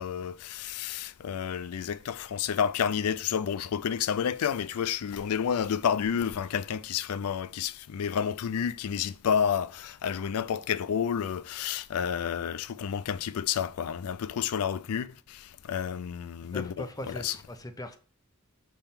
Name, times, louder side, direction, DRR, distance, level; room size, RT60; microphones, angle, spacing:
voice 1, 0.0-17.4, left 8 dB, 80° left, 0.4 m, -30 dB
voice 2, 16.5-18.0, left 1 dB, 15° left, 0.7 m, -39 dB
5.5 x 3.6 x 5.8 m
head